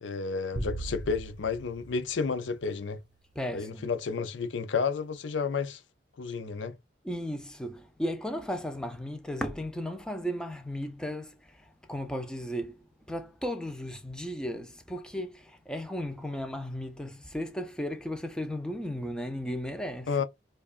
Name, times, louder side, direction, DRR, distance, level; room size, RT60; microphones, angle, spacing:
voice 1, 0.0-3.0 3.5-5.8 6.2-6.7 20.1-20.2, left 5 dB, 75° left, 0.5 m, -31 dB
sound 1, 0.6-3.1, right 2 dB, 25° right, 0.9 m, -39 dB
voice 2, 3.4-3.9 7.0-20.1, equal, 5° left, 0.5 m, -35 dB
4.7 x 2.4 x 2.4 m
head